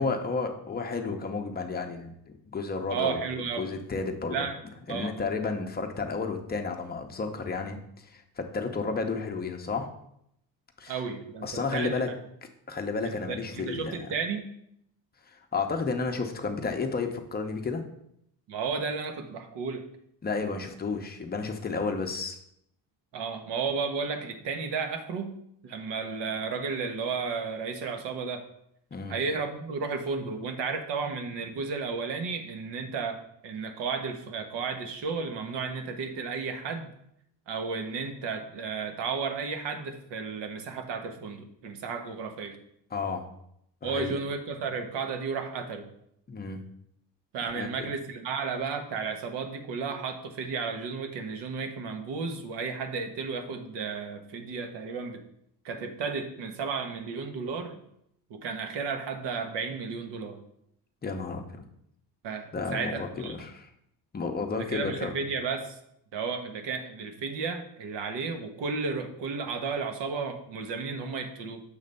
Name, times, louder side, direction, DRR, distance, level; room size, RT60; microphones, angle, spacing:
voice 1, 0.0-2.1 2.5-3.2 3.6-4.5 4.9-7.8 8.0-9.9 10.8-10.9 11.4-12.1 12.7-14.1 15.3-17.8 20.2-22.4 28.9-29.2 42.9-43.3 43.8-44.2 46.3-46.6 47.5-47.9 61.0-61.7 62.5-63.7 64.1-65.1, left 4 dB, 20° left, 4 dB, 0.6 m, -32 dB
voice 2, 2.9-3.7 4.3-4.6 4.9-5.1 10.9-12.1 13.0-14.4 18.5-19.8 23.1-25.3 25.6-28.4 29.1-36.9 37.5-42.6 43.8-45.9 47.3-55.2 55.6-57.8 58.3-60.4 62.2-63.3 64.5-65.8 66.1-71.6, right 5 dB, 70° right, 6 dB, 1.0 m, -33 dB
6.7 x 3.2 x 5.2 m, 0.74 s
cardioid pair, 135°, 43 cm